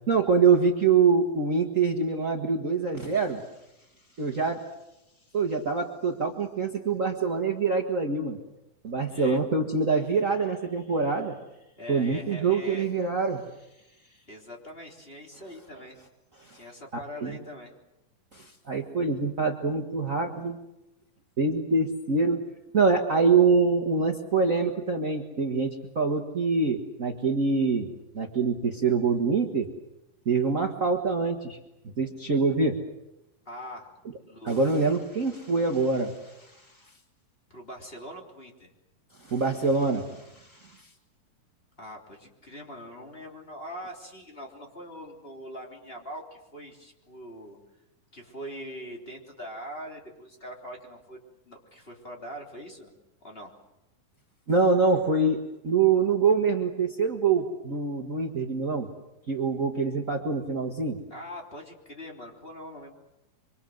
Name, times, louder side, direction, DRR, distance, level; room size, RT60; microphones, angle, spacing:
voice 1, 0.1-3.4 4.2-4.6 5.3-8.4 8.8-11.3 11.9-13.4 16.4-16.6 16.9-17.4 18.3-20.6 21.4-22.4 22.7-29.7 30.2-31.6 31.8-32.8 34.4-36.7 39.2-40.8 54.5-55.4 55.6-58.9 59.3-61.0, right 4 dB, 60° right, 2 dB, 0.8 m, -25 dB
voice 2, 9.0-9.4 11.8-12.9 14.3-16.0 16.5-17.7 33.4-33.9 34.3-34.9 37.5-38.7 41.8-47.6 48.1-52.9 53.2-53.5 61.1-62.9, equal, 15° left, 0 dB, 3.3 m, -42 dB
25.5 x 25.0 x 7.8 m, 0.90 s
omnidirectional pair, 4.0 m